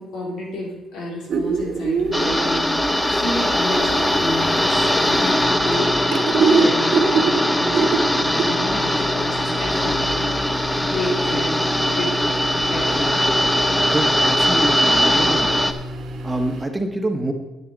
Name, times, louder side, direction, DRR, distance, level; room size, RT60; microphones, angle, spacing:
voice 1, 0.0-5.9 6.6-12.1 12.7-13.1, left 1 dB, 85° left, -2 dB, 3.4 m, -31 dB
sound 1, 1.3-16.7, right 4 dB, 65° right, 1.5 m, -26 dB
sound 2, 2.1-15.7, left 1 dB, 10° left, 0.7 m, -20 dB
voice 2, 13.9-15.6 16.2-17.3, right 2 dB, 15° right, 5 dB, 1.2 m, -26 dB
9.2 x 8.7 x 5.2 m, 1.0 s
cardioid pair, 90°, 0 cm